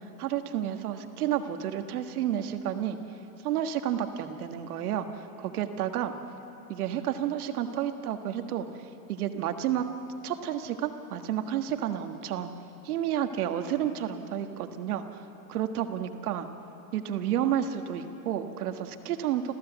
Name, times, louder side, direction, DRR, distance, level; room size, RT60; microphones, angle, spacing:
voice 1, 0.2-3.0 3.4-5.1 5.4-6.1 6.7-8.7 9.1-9.9 10.2-12.5 12.8-15.2 15.5-16.5 16.9-19.5, right 10 dB, 85° right, 6 dB, 1.6 m, -30 dB
28.5 x 15.0 x 8.1 m, 3.0 s
supercardioid pair, 110°, 43 cm